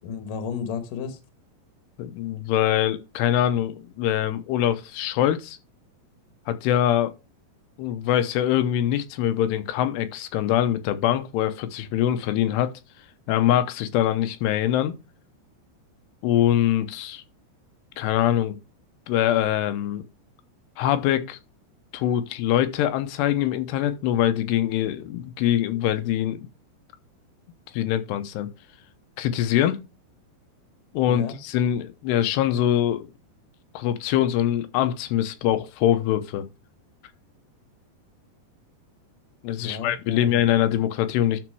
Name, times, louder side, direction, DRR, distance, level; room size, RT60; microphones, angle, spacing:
voice 1, 0.0-1.2 31.1-31.4 39.6-40.4, left 6 dB, 65° left, 2.4 m, -33 dB
voice 2, 2.0-5.6 6.5-7.1 7.8-12.7 13.3-14.9 16.2-17.2 18.0-18.6 19.1-20.0 20.8-21.4 21.9-26.5 27.7-28.5 29.2-29.8 30.9-33.1 33.7-36.5 39.4-41.4, left 11 dB, 80° left, 2.9 m, -23 dB
12.0 x 4.2 x 4.6 m
omnidirectional pair, 4.8 m